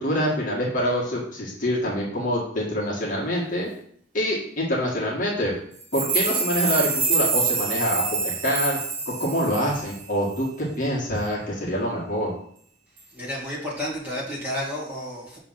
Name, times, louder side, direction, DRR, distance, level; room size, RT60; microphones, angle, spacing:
voice 1, 0.0-3.7 4.1-5.5 5.9-8.8 9.1-12.3, equal, 45° left, -4 dB, 1.8 m, -25 dB
sound 1, 5.8-10.1 10.3-10.4, right 4 dB, 45° right, 1.0 m, -26 dB
voice 2, 13.1-15.4, left 1 dB, 10° right, -7 dB, 2.1 m, -31 dB
6.4 x 3.7 x 5.7 m, 0.62 s
head